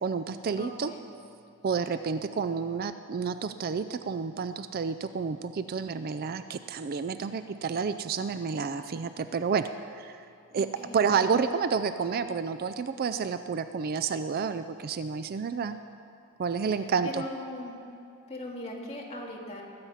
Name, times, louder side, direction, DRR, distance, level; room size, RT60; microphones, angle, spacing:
voice 1, 0.0-0.9 1.6-10.2 10.5-10.7 10.9-15.8 16.4-17.2, right 5 dB, 40° right, 10 dB, 0.3 m, -30 dB
voice 2, 0.6-1.0 10.5-11.2 17.0-17.7 18.3-19.6, left 1 dB, 30° left, -3 dB, 2.2 m, -39 dB
20.5 x 8.7 x 5.6 m, 2.5 s
head